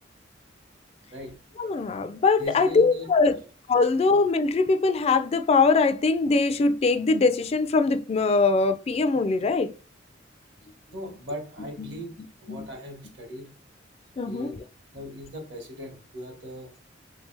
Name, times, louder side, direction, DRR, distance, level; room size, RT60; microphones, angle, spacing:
voice 1, 1.6-3.3 3.7-9.7 11.8-12.0 12.5-12.7 14.2-14.5, left 4 dB, 35° left, 0.3 m, -22 dB
voice 2, 2.4-3.4 10.9-12.1 12.4-13.5 14.2-14.5 14.9-16.7, equal, 70° right, 1.5 m, -39 dB
3.2 x 3.2 x 3.3 m
head